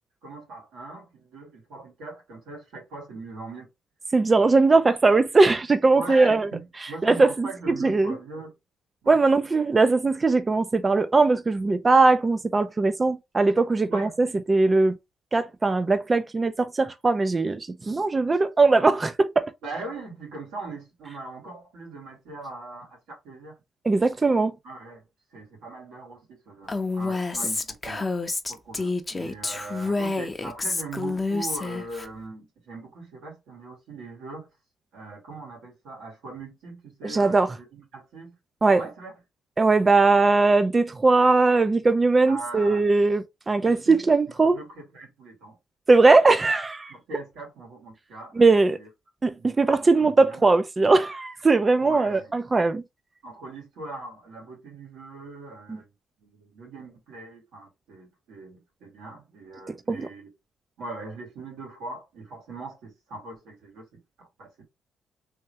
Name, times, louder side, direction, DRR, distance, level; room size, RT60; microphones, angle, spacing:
voice 1, 0.2-3.7 5.9-8.5 9.0-9.2 13.9-14.2 19.6-23.6 24.6-25.0 25.3-28.1 28.5-34.5 34.9-38.3 38.8-39.1 42.3-42.9 43.6-44.0 44.3-45.6 46.9-48.9 49.3-50.5 51.8-52.4 53.2-55.9 56.2-60.3 60.8-64.6, right 3 dB, 90° right, 2.1 m, -40 dB
voice 2, 4.1-6.5 7.0-8.2 9.1-15.0 15.3-19.5 23.8-24.5 37.0-37.5 38.6-38.8 39.6-44.6 45.9-46.9 48.4-48.8 49.2-52.8 59.9-60.1, right 3 dB, 25° right, 0.4 m, -20 dB
Female speech woman speaking, 26.7-32.1, left 3 dB, 20° left, 0.6 m, -28 dB
3.4 x 3.2 x 2.8 m
cardioid pair, 90°, 0 cm